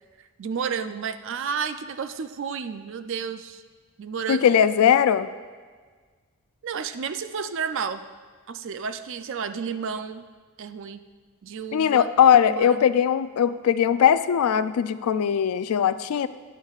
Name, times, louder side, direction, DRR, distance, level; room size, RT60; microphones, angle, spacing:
voice 1, 0.4-3.6 4.0-4.6 6.6-8.0 8.5-10.2 10.6-11.0 11.4-12.1 12.5-12.8, right 6 dB, 55° right, 10 dB, 0.4 m, -31 dB
voice 2, 4.3-5.3 11.7-16.3, left 8 dB, 80° left, 13 dB, 0.3 m, -20 dB
12.0 x 9.5 x 2.4 m, 1.5 s
head